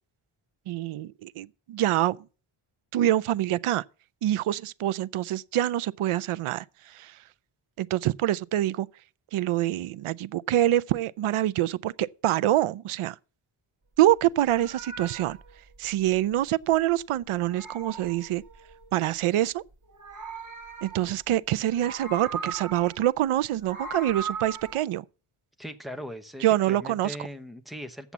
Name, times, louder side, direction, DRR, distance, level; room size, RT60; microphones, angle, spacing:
voice 1, 0.7-2.2 2.9-3.8 4.2-7.1 7.8-8.9 9.3-13.1 14.0-15.4 15.8-18.4 18.9-19.6 20.8-25.0 26.4-27.2, right 13 dB, 80° right, 0.6 m, -25 dB
Meow, 14.2-16.9 17.2-18.9 19.7-21.3 21.6-23.1 23.4-24.8, right 5 dB, 35° right, 2.0 m, -39 dB
voice 2, 25.6-28.1, equal, ahead, 0.9 m, -39 dB
8.1 x 7.2 x 7.2 m
wide cardioid pair, 140°, 50 cm